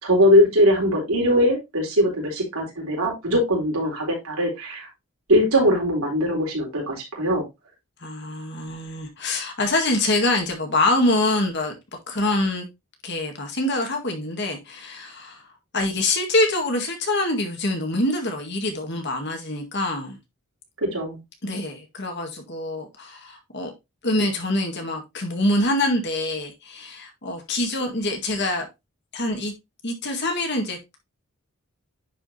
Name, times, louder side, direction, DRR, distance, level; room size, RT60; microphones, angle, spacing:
voice 1, 0.0-4.9 5.3-7.4 20.8-21.2, equal, 85° right, 4.1 m, -21 dB
voice 2, 8.0-11.8 12.1-12.7 13.0-15.4 15.7-20.2 21.4-23.7 24.0-28.7 29.1-29.5 29.8-31.0, left 1 dB, 50° left, 1.8 m, -25 dB
10.0 x 5.0 x 2.8 m
head